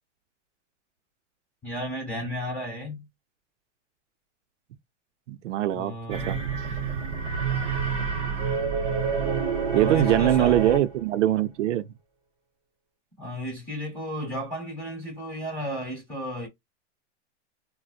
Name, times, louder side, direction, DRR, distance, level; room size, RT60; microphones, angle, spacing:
voice 1, 1.6-3.1 5.7-6.4 9.7-10.6 13.2-16.5, equal, 5° left, 1.2 m, -34 dB
voice 2, 5.3-6.4 6.7-6.9 9.7-11.8, right 12 dB, 75° right, 0.6 m, -23 dB
sound 1, 6.1-11.0, right 5 dB, 40° right, 1.1 m, -28 dB
3.9 x 2.1 x 2.4 m
supercardioid pair, 180°, 36 cm